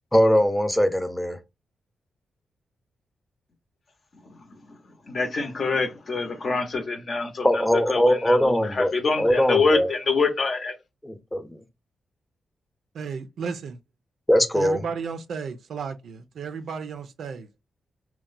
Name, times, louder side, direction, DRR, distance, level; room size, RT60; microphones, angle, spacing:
voice 1, 0.1-1.4 7.4-8.9 9.2-9.9 11.0-11.6 14.3-14.8, equal, 15° left, 0.6 m, -21 dB
voice 2, 4.2-4.8 5.1-10.7, left 4 dB, 60° left, 0.7 m, -26 dB
voice 3, 12.9-13.8 14.5-17.5, right 6 dB, 75° right, 0.3 m, -33 dB
2.9 x 2.1 x 2.4 m
supercardioid pair, 45°, 0 cm